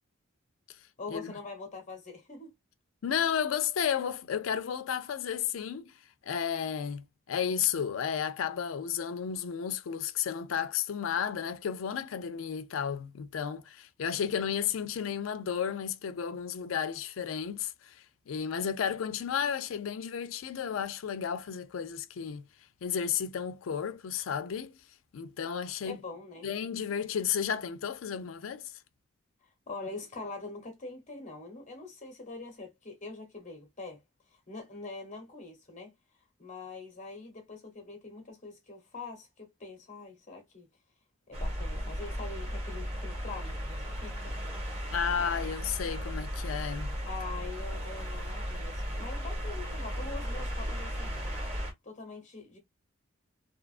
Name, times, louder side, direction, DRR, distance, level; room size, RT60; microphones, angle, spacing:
voice 1, 1.0-2.5 25.8-26.5 29.4-34.0 34.3-35.9 36.4-40.7 41.3-44.4 47.0-51.1 51.8-52.6, left 3 dB, 35° left, 0.8 m, -44 dB
voice 2, 3.0-5.9 6.3-22.5 22.8-24.8 25.1-26.0 26.4-28.7 44.9-47.0, left 8 dB, 80° left, 0.4 m, -33 dB
sound 1, 41.3-51.7, equal, 30° right, 1.1 m, -35 dB
2.7 x 2.3 x 2.4 m
head